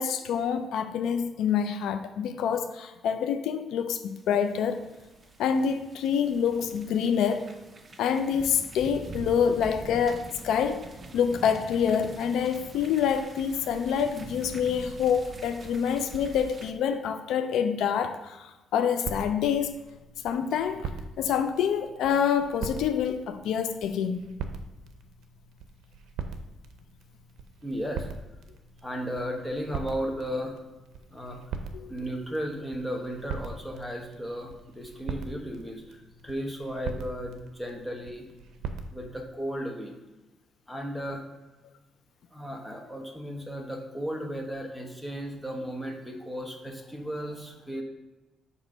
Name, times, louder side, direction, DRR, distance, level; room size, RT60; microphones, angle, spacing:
voice 1, 0.0-4.8 5.4-7.5 8.0-10.8 11.1-19.7 20.2-20.9 21.2-24.2 31.7-31.9, left 7 dB, 80° left, 8 dB, 0.5 m, -27 dB
sound 1, 4.1-16.7, right 2 dB, 30° right, 0.8 m, -44 dB
sound 2, 19.0-39.0, right 5 dB, 80° right, 0.6 m, -41 dB
voice 2, 27.6-28.1 28.8-30.6 31.1-31.6 31.9-38.3 38.9-40.0 40.7-41.2 42.3-47.8, equal, 5° left, 1 dB, 1.3 m, -35 dB
8.2 x 3.0 x 5.4 m, 1.1 s
cardioid pair, 90°, 0 cm